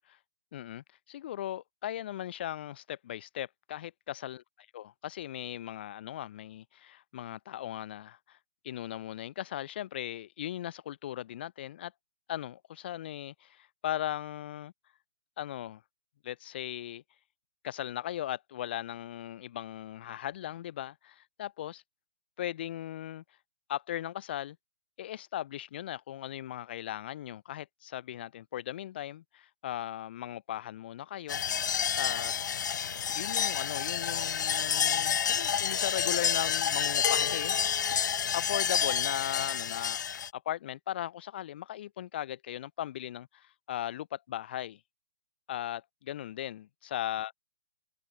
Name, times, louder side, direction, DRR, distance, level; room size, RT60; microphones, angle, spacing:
voice 1, 0.5-4.4 4.7-8.4 8.6-11.9 12.3-14.7 15.4-15.8 16.2-17.0 17.6-21.8 22.4-23.2 23.7-24.6 25.0-31.4 32.0-32.3 33.1-37.6 38.3-40.0 40.3-44.8 45.5-47.3, left 12 dB, 30° left, 1.1 m, -38 dB
sound 1, 31.3-40.3, left 8 dB, 65° left, 0.4 m, -29 dB
hypercardioid pair, 175°, 11 cm